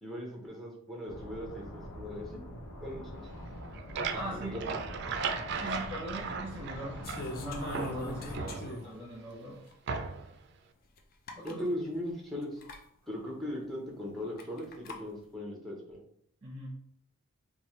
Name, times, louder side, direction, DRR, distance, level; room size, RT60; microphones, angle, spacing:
voice 1, 0.0-2.5 2.8-3.3 4.0-4.7 11.4-12.6 13.1-16.0, equal, ahead, -2 dB, 0.7 m, -39 dB
sound 1, 1.1-8.4, left 1 dB, 85° left, 0.7 m, -44 dB
sound 2, 3.5-7.4 7.7-9.1 9.9-10.4, right 5 dB, 50° right, 0.3 m, -37 dB
voice 2, 4.1-4.6 5.6-9.6 11.3-11.7 16.4-16.7, right 1 dB, 30° right, -4 dB, 0.9 m, -41 dB
sound 3, 7.0-9.1 9.7-9.8 11.0-11.1 11.3-11.6 12.6-12.8 14.4-15.0, left 2 dB, 40° left, 0.4 m, -41 dB
3.2 x 2.3 x 4.2 m, 0.70 s
head